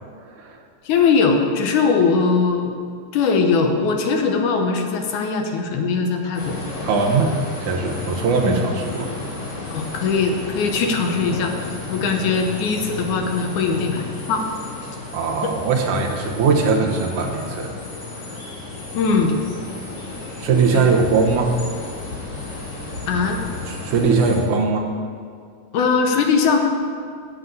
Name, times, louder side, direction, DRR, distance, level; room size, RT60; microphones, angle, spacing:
voice 1, 0.2-0.6 6.8-7.3 7.6-9.1 15.1-17.7 18.3-18.4 20.4-21.5 23.7-24.9, right 4 dB, 70° right, 1 dB, 2.4 m, -20 dB
voice 2, 0.8-2.7 3.1-6.6 8.4-8.6 9.7-11.5 11.9-14.4 18.9-19.3 20.7-20.9 23.1-23.4 25.7-26.6, left 5 dB, 75° left, 4 dB, 2.3 m, -20 dB
sound 1, 6.3-24.4, left 3 dB, 50° left, 3.7 m, -33 dB
10.0 x 7.5 x 8.1 m, 2.2 s
omnidirectional pair, 3.8 m